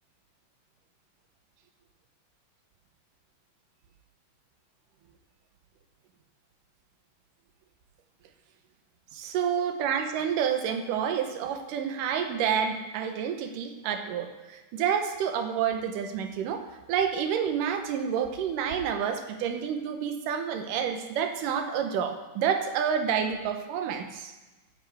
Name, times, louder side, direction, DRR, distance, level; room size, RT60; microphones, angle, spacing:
voice 1, 9.1-24.3, right 8 dB, 80° right, 6 dB, 2.5 m, -29 dB
15.5 x 9.6 x 3.5 m, 1.2 s
omnidirectional pair, 3.8 m